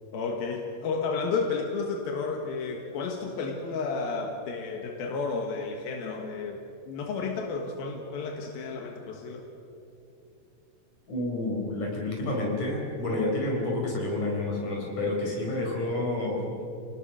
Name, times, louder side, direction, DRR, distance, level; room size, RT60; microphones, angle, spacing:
voice 1, 0.1-6.6 6.9-9.4, left 4 dB, 90° left, 2 dB, 3.4 m, -32 dB
voice 2, 11.1-16.6, left 2 dB, 55° left, -1 dB, 6.1 m, -29 dB
28.5 x 19.0 x 6.4 m, 2.7 s
omnidirectional pair, 4.1 m